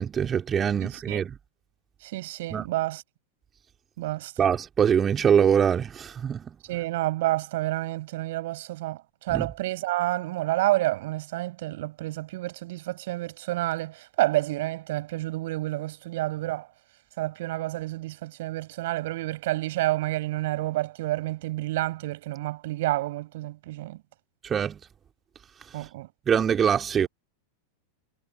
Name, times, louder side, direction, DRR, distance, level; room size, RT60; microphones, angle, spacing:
voice 1, 0.0-1.3 2.5-2.6 4.4-6.4 9.3-9.5 24.4-24.8 26.3-27.1, right 8 dB, 25° right, 3.1 m, -23 dB
voice 2, 0.8-1.2 2.0-3.0 4.0-4.3 6.7-16.7 17.2-24.0 25.7-26.1, right 17 dB, 55° right, 6.9 m, -29 dB
figure-of-eight pair, 90°, 0 cm